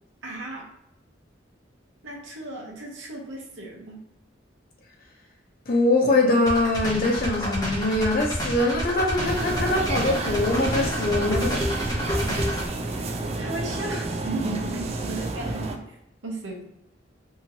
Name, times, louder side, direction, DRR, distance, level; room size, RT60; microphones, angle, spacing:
voice 1, 0.2-0.7 2.0-4.0 13.3-16.0 16.2-16.6, right 2 dB, 80° right, 0 dB, 0.8 m, -35 dB
voice 2, 5.7-12.5, left 2 dB, 50° left, 0 dB, 0.7 m, -23 dB
sound 1, 6.5-12.7, equal, 20° left, 0.8 m, -29 dB
sound 2, 9.2-15.8, right 2 dB, 35° right, 0.3 m, -30 dB
2.8 x 2.5 x 2.8 m, 0.82 s
head